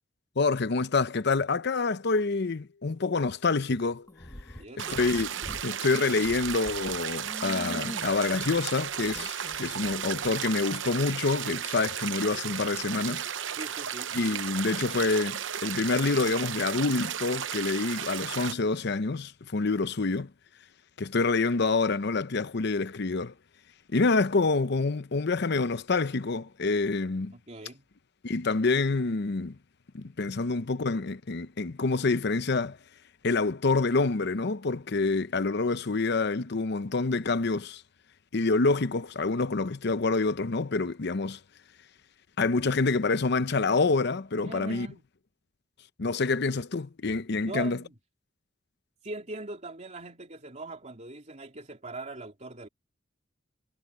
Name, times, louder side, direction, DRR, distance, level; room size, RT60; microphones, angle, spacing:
voice 1, 0.4-4.1 4.9-5.3 5.6-13.2 14.1-20.3 21.0-23.3 23.9-27.3 28.2-29.6 29.9-32.8 33.2-37.8 38.3-41.4 42.4-44.9 46.0-47.8, left 3 dB, 60° left, 0.8 m, -27 dB
sound 1, 0.7-10.7, left 4 dB, 85° left, 4.0 m, -62 dB
sound 2, 4.1-5.6 6.0-10.3, left 1 dB, 20° left, 1.4 m, -44 dB
voice 2, 4.5-5.0 13.6-14.1 27.3-27.8 44.4-45.0 47.4-47.9 49.0-52.7, right 2 dB, 40° right, 3.3 m, -41 dB
sound 3, 4.8-18.5, right 9 dB, 75° right, 0.8 m, -34 dB
head